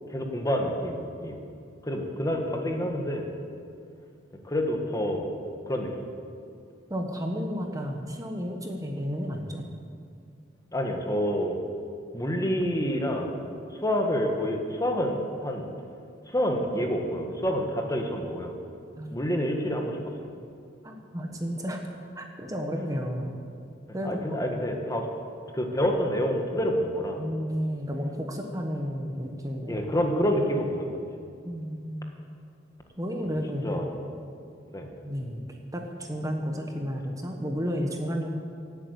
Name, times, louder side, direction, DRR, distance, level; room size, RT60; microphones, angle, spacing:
voice 1, 0.1-1.4 1.8-3.3 4.4-5.3 5.7-6.1 10.7-11.6 12.1-13.4 13.7-15.7 16.3-18.5 19.1-20.0 23.9-25.1 25.5-27.2 29.7-31.0 33.3-33.4 33.6-33.9 34.7-34.9, equal, 20° left, 2 dB, 1.6 m, -28 dB
voice 2, 6.9-9.7 19.0-19.3 20.8-21.8 22.1-23.3 23.9-24.7 27.2-29.8 31.4-32.1 33.0-33.8 35.0-38.3, equal, 20° right, 2 dB, 1.2 m, -32 dB
17.5 x 8.7 x 8.1 m, 2.4 s
head